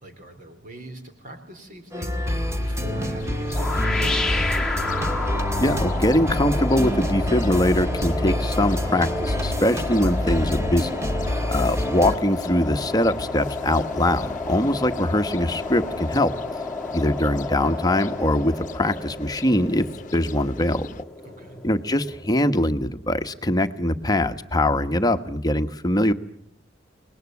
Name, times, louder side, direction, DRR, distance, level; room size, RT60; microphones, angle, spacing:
voice 1, 0.0-4.7 21.2-21.6, right 1 dB, 45° right, 6 dB, 3.8 m, -41 dB
sound 1, 1.9-12.2, equal, 15° right, 2.2 m, -26 dB
sound 2, 3.2-21.0, left 2 dB, 45° left, 1.0 m, -38 dB
sound 3, 3.5-22.4, left 3 dB, 5° left, 1.8 m, -31 dB
voice 2, 5.6-10.9 11.5-16.4 16.9-19.8 20.1-21.0 21.6-26.1, left 1 dB, 20° left, 8 dB, 1.2 m, -22 dB
28.5 x 20.5 x 9.6 m, 0.74 s
head